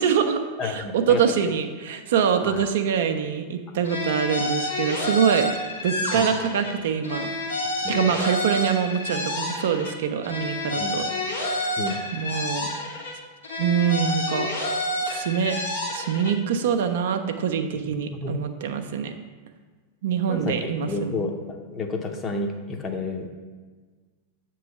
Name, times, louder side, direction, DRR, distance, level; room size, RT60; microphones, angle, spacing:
voice 1, 0.0-5.5 5.8-7.3 7.9-11.0 11.4-11.8 12.1-12.7 13.6-14.5 15.1-15.6 15.9-19.1 20.0-21.3, right 7 dB, 55° right, 7 dB, 0.5 m, -24 dB
voice 2, 0.6-1.5 2.4-2.6 3.7-3.8 6.1-6.3 7.6-8.1 10.8-11.0 11.8-12.0 17.8-18.4 20.3-23.3, left 3 dB, 25° left, 3 dB, 0.7 m, -31 dB
sound 1, 3.8-6.7 7.0-9.9 10.2-13.1 13.4-16.3, left 1 dB, 75° left, 1.6 m, -29 dB
7.6 x 3.1 x 5.7 m, 1.4 s
figure-of-eight pair, 90°, 0 cm